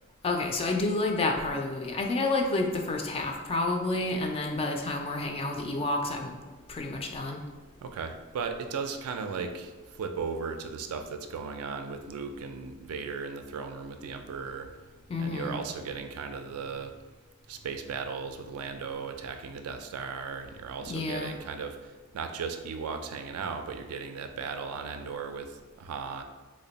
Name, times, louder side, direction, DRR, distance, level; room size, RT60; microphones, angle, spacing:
voice 1, 0.2-6.4 6.7-7.4 15.1-15.6 20.8-21.4, left 2 dB, 25° left, 2 dB, 0.3 m, -29 dB
voice 2, 7.8-14.7 15.2-16.9 17.5-26.2, right 5 dB, 80° right, 6 dB, 0.3 m, -36 dB
3.3 x 2.1 x 3.9 m, 1.3 s
head